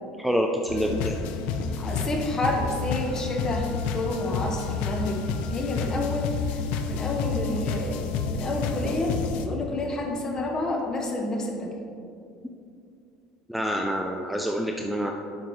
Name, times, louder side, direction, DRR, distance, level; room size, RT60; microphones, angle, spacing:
voice 1, 0.2-1.1 13.5-15.1, equal, ahead, 2 dB, 0.5 m, -27 dB
sound 1, 0.7-9.5, left 5 dB, 70° left, 0.7 m, -30 dB
voice 2, 1.8-5.2 5.5-6.6 6.9-11.7, left 2 dB, 30° left, 1 dB, 1.5 m, -29 dB
11.5 x 5.2 x 3.2 m, 2.5 s
supercardioid pair, 95°, 2 cm